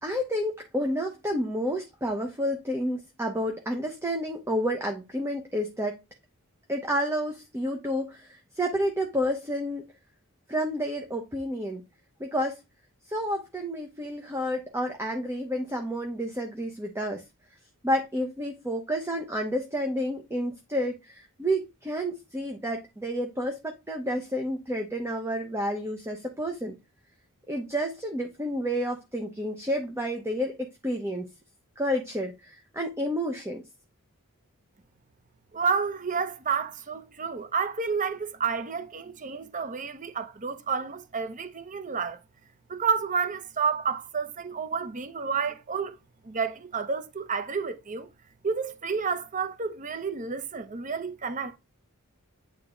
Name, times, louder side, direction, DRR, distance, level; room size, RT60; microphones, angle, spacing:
voice 1, 0.0-6.0 6.7-8.3 8.6-9.8 10.5-11.8 12.2-12.6 13.1-17.2 17.8-26.7 27.5-30.6 30.8-31.3 31.8-33.6, equal, 10° right, 1.0 m, -30 dB
voice 2, 35.5-42.2 42.7-46.0 46.2-48.1 48.4-51.6, right 5 dB, 35° right, 0.8 m, -30 dB
9.0 x 3.6 x 3.8 m
head